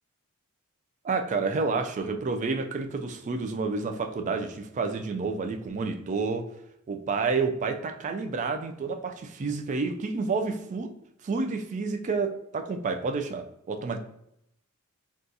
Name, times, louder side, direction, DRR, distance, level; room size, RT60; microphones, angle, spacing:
voice 1, 1.0-6.5 6.9-10.9 11.2-14.0, right 4 dB, 35° right, 6 dB, 0.3 m, -29 dB
3.9 x 2.3 x 2.6 m, 0.78 s
head